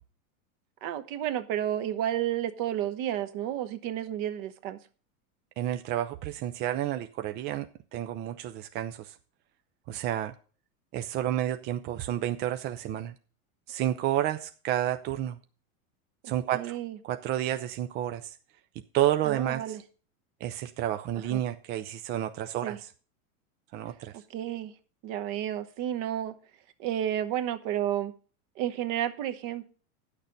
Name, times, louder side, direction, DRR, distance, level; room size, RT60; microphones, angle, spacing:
voice 1, 0.8-4.8 16.2-17.0 19.2-19.8 21.3-21.4 22.6-22.8 24.1-24.7 25.0-26.3 26.8-28.1 28.6-29.7, right 11 dB, 50° right, 10 dB, 1.1 m, -31 dB
voice 2, 5.6-7.7 7.9-9.1 9.9-10.3 10.9-13.1 13.7-15.4 16.3-16.8 17.0-18.4 18.9-19.8 20.4-22.8 23.7-24.1, right 12 dB, 25° right, 8 dB, 0.4 m, -30 dB
10.0 x 6.6 x 5.2 m, 0.39 s
supercardioid pair, 125°, 42 cm